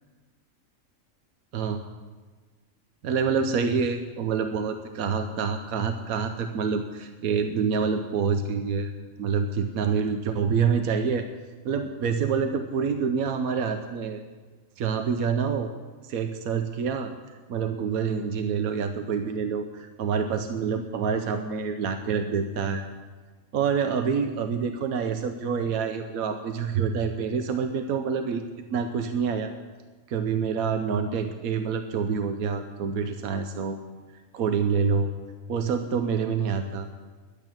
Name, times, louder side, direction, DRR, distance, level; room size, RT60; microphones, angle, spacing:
voice 1, 3.0-8.9 9.2-11.3 11.6-14.2 14.8-15.7 16.0-17.1 17.5-22.8 23.5-28.4 28.7-29.5 30.1-33.8 34.3-35.1 35.5-36.9, right 6 dB, 85° right, 6 dB, 1.2 m, -27 dB
11.5 x 8.3 x 8.9 m, 1.4 s
omnidirectional pair, 1.4 m